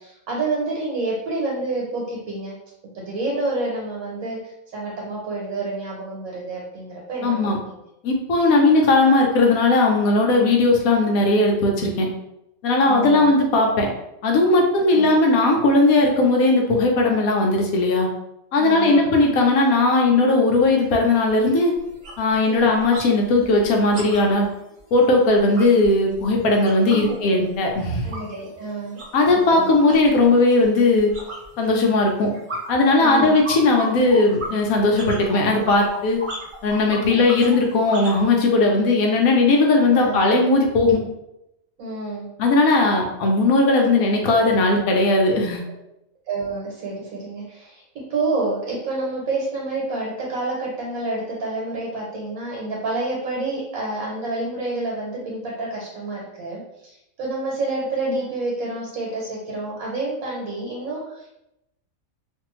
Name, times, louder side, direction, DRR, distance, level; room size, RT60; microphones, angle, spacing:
voice 1, 0.0-2.5 2.9-7.8 12.9-13.3 14.8-15.1 18.5-19.1 22.5-22.7 26.9-27.4 28.0-29.0 29.5-29.7 33.0-33.4 36.9-37.2 39.9-40.2 41.8-42.3 46.3-61.3, right 2 dB, 80° right, -3 dB, 1.2 m, -28 dB
voice 2, 7.2-7.6 8.0-12.1 12.6-13.9 14.2-18.1 18.5-21.7 22.2-24.5 24.9-28.1 29.1-31.1 31.6-32.3 32.7-36.2 36.6-41.0 42.4-45.6, left 2 dB, 85° left, 1 dB, 1.1 m, -18 dB
sound 1, 20.8-20.9 21.3-21.5 21.8-23.1 23.4-27.1 27.4-38.3, right 1 dB, 45° right, 0.7 m, -36 dB
2.6 x 2.5 x 3.0 m, 0.86 s
omnidirectional pair, 1.5 m